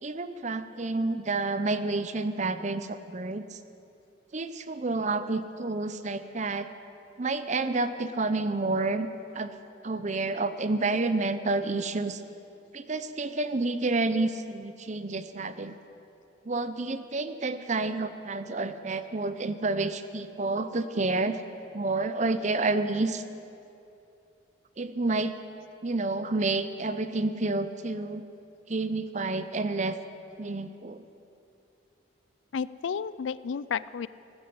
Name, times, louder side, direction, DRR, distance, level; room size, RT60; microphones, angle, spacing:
voice 1, 0.0-3.6 4.3-6.7 7.2-9.1 9.3-9.5 9.8-12.2 12.7-15.8 16.5-21.4 21.7-23.2 24.8-25.4 25.8-28.2 28.7-30.0 30.4-31.0, right 3 dB, 35° right, 11 dB, 0.6 m, -29 dB
voice 2, 32.5-34.1, left 6 dB, 70° left, 17 dB, 0.4 m, -32 dB
18.0 x 9.9 x 7.9 m, 2.7 s
head